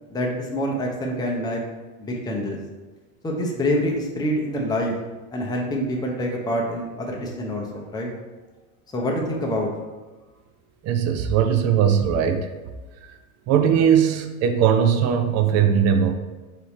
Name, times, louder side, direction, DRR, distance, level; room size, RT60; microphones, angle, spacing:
voice 1, 0.1-1.6 2.0-2.6 3.2-5.0 5.3-8.1 8.9-9.7, equal, 10° left, -1 dB, 0.7 m, -26 dB
voice 2, 10.8-12.5 13.5-16.2, right 8 dB, 40° right, 7 dB, 0.5 m, -19 dB
3.4 x 2.9 x 4.3 m, 1.2 s
hypercardioid pair, 85°, 43 cm